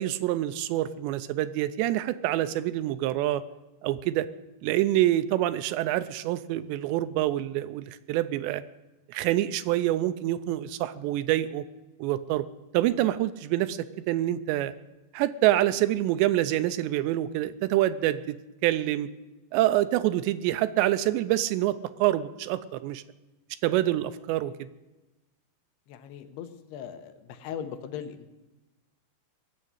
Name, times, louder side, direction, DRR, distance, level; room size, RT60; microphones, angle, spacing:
voice 1, 0.0-3.4 3.8-4.3 4.6-8.6 9.1-11.6 12.0-12.5 12.7-14.7 15.1-18.4 18.6-19.1 19.5-23.0 23.6-24.7, right 14 dB, 80° right, 12 dB, 2.8 m, -26 dB
voice 2, 25.9-28.3, left 8 dB, 75° left, 9 dB, 2.8 m, -39 dB
18.5 x 7.6 x 9.6 m, 1.1 s
omnidirectional pair, 5.2 m